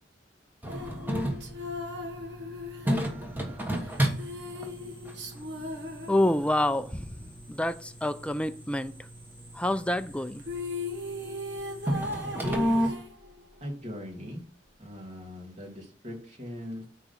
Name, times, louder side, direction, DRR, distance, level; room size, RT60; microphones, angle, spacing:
sound 1, 0.6-12.9, equal, 10° right, 1.3 m, -33 dB
sound 2, 0.7-6.8 10.1-10.2 10.4-13.6, left 2 dB, 70° right, 1.3 m, -38 dB
voice 1, 6.1-7.1 7.5-8.9 9.5-10.4, left 1 dB, 5° left, 0.4 m, -27 dB
voice 2, 12.4-13.0 13.6-14.4 14.8-16.9, left 1 dB, 40° right, 2.6 m, -39 dB
9.3 x 3.9 x 5.7 m
head